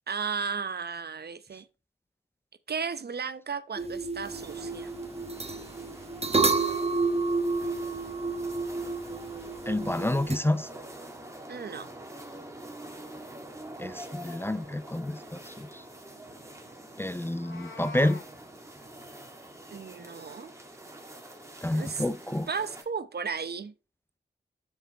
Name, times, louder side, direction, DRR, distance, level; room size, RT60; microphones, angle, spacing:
voice 1, 0.1-1.7 2.7-4.9 7.6-7.7 11.5-11.9 19.7-20.5 21.7-22.0 22.5-23.7, right 5 dB, 55° right, 0.8 m, -34 dB
sound 1, 3.8-10.4, right 3 dB, 30° right, 1.1 m, -30 dB
sound 2, 4.2-22.8, right 1 dB, 15° right, 2.1 m, -46 dB
voice 2, 9.7-10.7 13.8-15.8 17.0-18.2 21.6-22.5, left 1 dB, 10° left, 0.5 m, -29 dB
Meow, 17.2-18.3, left 3 dB, 90° left, 1.6 m, -45 dB
7.3 x 6.9 x 4.4 m
cardioid pair, 70°, 20 cm